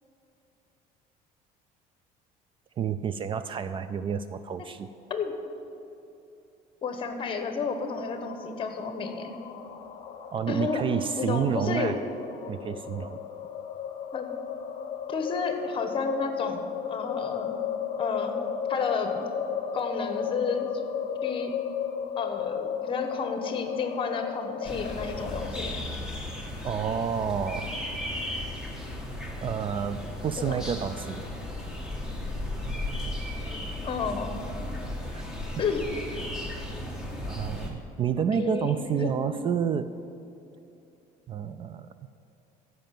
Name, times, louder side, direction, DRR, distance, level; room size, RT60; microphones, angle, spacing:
voice 1, 2.8-4.9 10.3-12.0 12.5-13.2 26.6-27.7 29.4-31.2 35.1-35.2 37.3-39.9 41.3-41.9, right 7 dB, 35° right, 12 dB, 0.4 m, -29 dB
voice 2, 6.8-9.3 10.5-10.8 11.2-12.0 14.1-14.3 15.1-17.6 18.0-18.4 18.7-19.3 19.7-20.7 21.2-21.5 22.2-25.8 30.4-30.6 33.8-34.3 35.6-35.8 38.2-39.2, left 5 dB, 35° left, 6 dB, 1.2 m, -31 dB
sound 1, 7.8-25.6, left 8 dB, 50° left, 0.9 m, -35 dB
sound 2, 24.6-37.7, left 1 dB, 5° right, 1.7 m, -35 dB
14.0 x 5.6 x 7.6 m, 2.7 s
cardioid pair, 130°, 16 cm